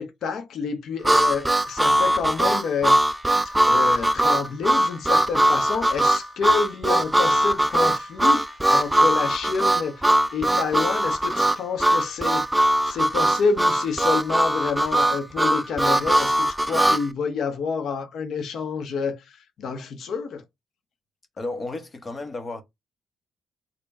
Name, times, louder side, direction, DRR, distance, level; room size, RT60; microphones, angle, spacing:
voice 1, 0.0-3.0 3.4-10.1 10.3-12.5 12.8-20.4, left 5 dB, 65° left, 0.7 m, -28 dB
Harmonica, 1.0-17.0, right 1 dB, 10° right, 0.3 m, -20 dB
voice 2, 21.4-22.6, left 2 dB, 30° left, 0.9 m, -32 dB
3.4 x 2.2 x 4.0 m
cardioid pair, 90°, 0 cm